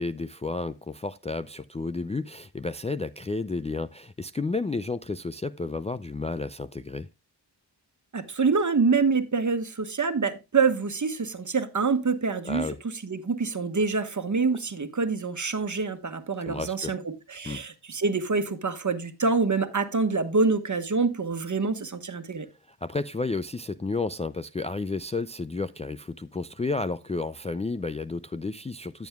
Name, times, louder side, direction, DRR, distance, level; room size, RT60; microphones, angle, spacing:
voice 1, 0.0-7.1 12.4-12.8 16.5-16.9 17.4-17.6 22.7-29.1, left 3 dB, 15° left, 0.4 m, -32 dB
voice 2, 8.1-22.5, right 4 dB, 45° right, 1.4 m, -26 dB
14.0 x 7.3 x 2.3 m
cardioid pair, 50°, 43 cm